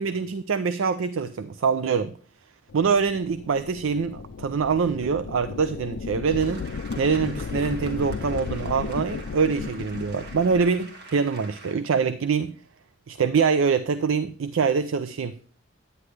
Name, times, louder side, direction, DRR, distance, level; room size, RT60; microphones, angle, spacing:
voice 1, 0.0-2.1 2.7-6.6 7.0-12.5 13.1-15.3, right 5 dB, 85° right, 0.5 m, -24 dB
sound 1, 2.7-10.8, left 5 dB, 65° left, 0.4 m, -35 dB
sound 2, 6.3-11.8, right 3 dB, 60° right, 1.8 m, -45 dB
9.7 x 9.6 x 3.2 m
head